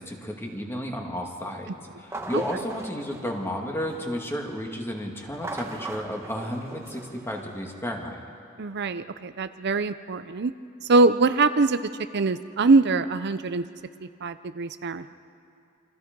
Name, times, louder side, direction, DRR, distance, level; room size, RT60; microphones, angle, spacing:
voice 1, 0.0-8.2, equal, 10° left, 1 dB, 2.3 m, -32 dB
sound 1, 2.0-4.2 5.3-7.8, right 2 dB, 15° right, 1.6 m, -40 dB
voice 2, 8.6-10.5 10.8-11.8 12.1-13.6 14.0-15.1, right 3 dB, 55° right, 12 dB, 0.6 m, -23 dB
28.0 x 26.0 x 5.3 m, 2.5 s
head